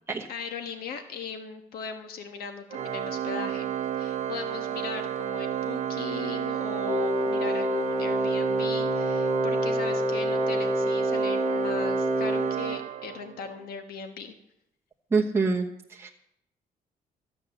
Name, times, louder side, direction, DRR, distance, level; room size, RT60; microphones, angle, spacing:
voice 1, 0.3-3.7 4.0-14.3, left 5 dB, 85° left, 7 dB, 1.3 m, -38 dB
Organ, 2.7-13.5, right 10 dB, 50° right, 0.8 m, -31 dB
Wind instrument woodwind instrument, 6.9-12.6, left 2 dB, ahead, 0.4 m, -28 dB
voice 2, 15.1-16.1, right 4 dB, 15° right, -2 dB, 1.1 m, -26 dB
13.5 x 8.2 x 7.0 m, 0.77 s
cardioid pair, 130°, 15 cm